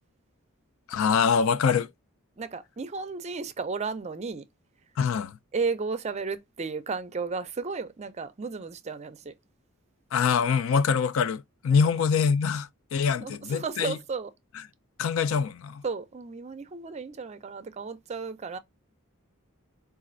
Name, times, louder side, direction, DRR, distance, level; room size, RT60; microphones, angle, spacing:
voice 1, 0.9-1.9 5.0-5.4 10.1-14.0 15.0-15.8, left 6 dB, 65° left, 0.3 m, -24 dB
voice 2, 2.4-4.5 5.5-9.4 11.7-11.8 13.2-14.3 15.8-18.6, right 4 dB, 30° right, 0.4 m, -33 dB
4.1 x 2.4 x 2.4 m
head